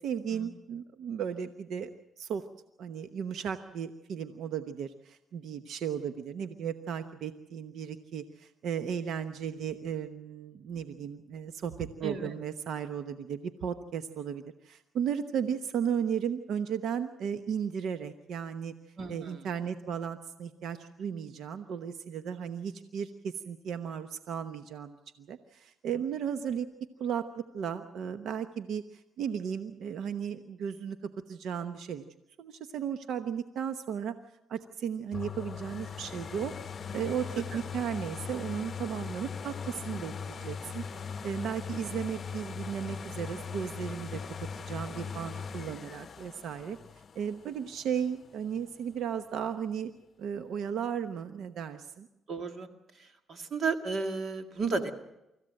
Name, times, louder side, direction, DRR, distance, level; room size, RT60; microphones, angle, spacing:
voice 1, 0.0-1.9 2.2-2.4 2.8-18.7 19.1-26.7 27.0-32.0 32.4-34.1 34.5-36.5 36.9-40.8 41.2-44.2 44.7-46.8 47.1-49.9 50.2-52.1, right 8 dB, 75° right, 10 dB, 1.0 m, -35 dB
voice 2, 12.0-12.3 19.0-19.5 52.3-52.7 52.9-54.9, right 4 dB, 55° right, 7 dB, 2.1 m, -33 dB
sound 1, 35.1-48.8 49.3-49.4, left 6 dB, 45° left, 0.8 m, -40 dB
25.0 x 15.0 x 7.7 m, 0.89 s
cardioid pair, 90°, 0 cm